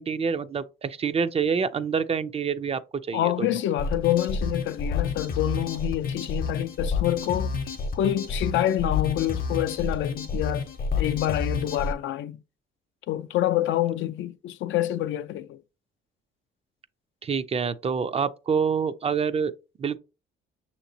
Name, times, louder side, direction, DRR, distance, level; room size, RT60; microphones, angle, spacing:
voice 1, 0.0-2.8 3.1-3.5 17.2-19.5 19.8-20.0, right 6 dB, 30° right, 0.4 m, -26 dB
voice 2, 3.1-7.5 7.9-10.7 11.0-12.4 13.1-15.6, left 13 dB, 75° left, 0.4 m, -27 dB
sound 1, 3.8-11.9, left 5 dB, 50° left, 0.7 m, -29 dB
6.3 x 2.9 x 2.7 m
cardioid pair, 90°, 20 cm